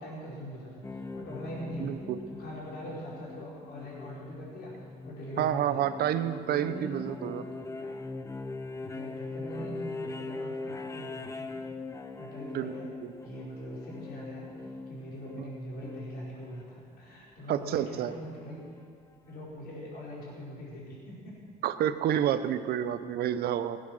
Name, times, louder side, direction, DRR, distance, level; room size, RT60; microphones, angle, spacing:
voice 1, 0.0-4.7 5.0-5.9 6.5-7.9 8.8-11.6 12.2-12.9 13.2-14.5 14.9-18.7 19.3-21.3, equal, 65° left, -5 dB, 4.6 m, -42 dB
sound 1, 0.8-17.1 18.6-18.7, left 3 dB, 20° left, 0.8 m, -41 dB
voice 2, 1.8-2.2 5.4-7.7 12.5-13.1 15.4-15.5 17.5-18.1 21.6-23.8, right 10 dB, 70° right, 12 dB, 0.8 m, -29 dB
17.5 x 8.7 x 6.4 m, 2.2 s
cardioid pair, 110°, 17 cm